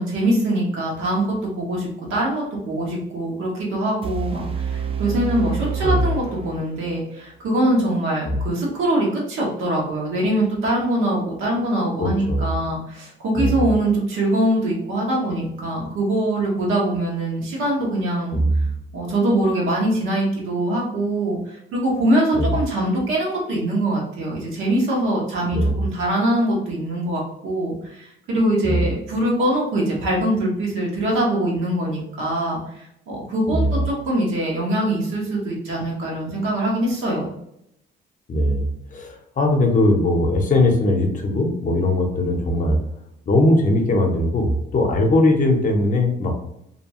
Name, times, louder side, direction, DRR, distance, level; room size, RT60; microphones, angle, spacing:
voice 1, 0.0-18.4 18.9-37.3, right 1 dB, 85° right, -3 dB, 1.1 m, -23 dB
sound 1, 4.0-7.0, right 7 dB, 30° right, 0.4 m, -28 dB
voice 2, 12.0-12.5 13.4-13.7 18.3-18.6 22.3-22.6 25.5-25.8 28.6-28.9 33.5-33.8 38.3-42.8 43.3-46.3, left 1 dB, 40° left, 2 dB, 0.6 m, -20 dB
2.7 x 2.3 x 2.8 m, 0.79 s
cardioid pair, 90°, 20 cm